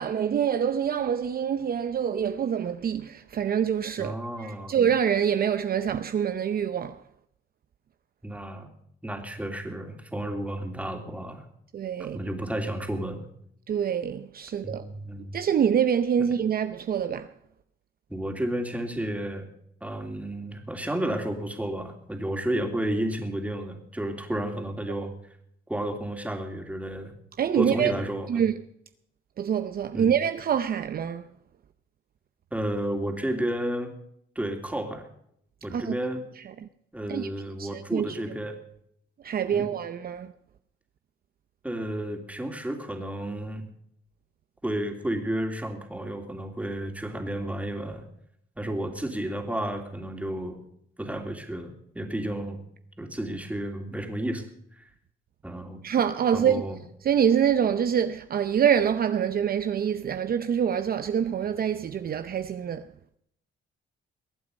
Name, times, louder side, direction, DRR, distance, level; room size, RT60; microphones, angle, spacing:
voice 1, 0.0-7.0 11.7-12.2 13.7-14.8 15.3-17.3 27.4-27.9 28.3-28.6 29.4-31.2 35.7-36.0 37.1-37.3 37.6-38.2 39.2-40.3 55.8-56.6 57.0-62.9, right 8 dB, 50° right, 0.7 m, -25 dB
voice 2, 4.0-4.7 8.2-8.7 9.0-11.5 12.0-13.3 14.6-15.4 18.1-19.5 19.8-25.1 25.7-27.1 27.5-28.4 29.9-30.1 32.5-33.9 34.3-35.0 35.6-36.2 36.9-38.6 39.5-39.7 41.6-43.6 44.6-48.0 48.6-50.6 51.0-52.6 53.0-54.4 54.7-54.9 55.4-55.8 56.3-56.8, right 1 dB, 5° right, 2.9 m, -32 dB
22.5 x 8.5 x 5.3 m
cardioid pair, 90°, 20 cm